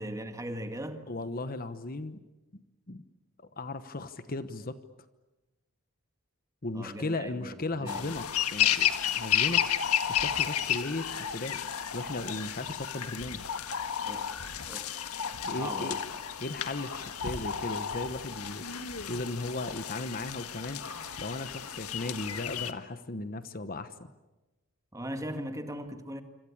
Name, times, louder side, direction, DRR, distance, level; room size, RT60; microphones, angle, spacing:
voice 1, 0.0-1.0 6.7-8.1 14.1-14.3 14.7-14.9 15.6-16.0 24.9-26.2, right 1 dB, 15° right, 1.9 m, -39 dB
voice 2, 1.1-2.2 2.5-2.6 2.9-3.0 3.4-4.8 6.6-9.6 10.1-11.6 11.9-13.4 15.4-16.0 16.4-18.7 19.1-20.8 21.2-23.9, left 2 dB, 40° left, 1.1 m, -36 dB
sound 1, 7.9-22.7, left 9 dB, 80° left, 1.6 m, -32 dB
Human voice, 16.1-17.6 18.6-19.4 20.4-21.5, left 2 dB, 65° left, 2.4 m, -46 dB
26.5 x 26.0 x 8.7 m
head